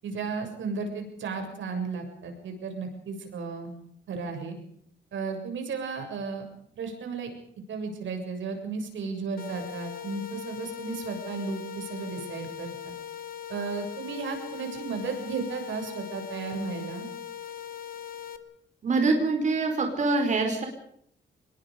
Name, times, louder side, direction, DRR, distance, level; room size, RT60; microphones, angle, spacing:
voice 1, 0.0-3.7 4.1-4.6 5.1-6.4 6.8-7.4 7.7-12.9 13.5-17.1, right 4 dB, 85° right, 4 dB, 7.1 m, -34 dB
sound 1, 9.4-18.4, left 10 dB, 50° left, 2.1 m, -40 dB
voice 2, 18.8-20.7, right 3 dB, 40° right, 3 dB, 4.7 m, -24 dB
26.0 x 22.0 x 5.2 m, 0.67 s
wide cardioid pair, 180°, 19 cm